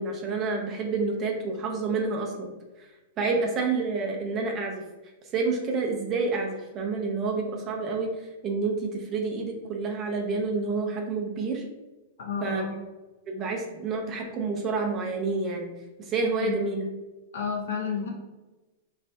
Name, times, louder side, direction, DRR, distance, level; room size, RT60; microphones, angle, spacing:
voice 1, 0.0-2.5 3.2-4.8 5.3-11.6 12.4-12.8 13.3-15.7 16.0-16.9, right 4 dB, 25° right, 1 dB, 0.6 m, -29 dB
voice 2, 12.2-12.8 16.4-16.5 17.3-18.1, left 6 dB, 75° left, 0 dB, 1.1 m, -31 dB
3.3 x 3.1 x 2.7 m, 1.1 s
supercardioid pair, 150°, 0 cm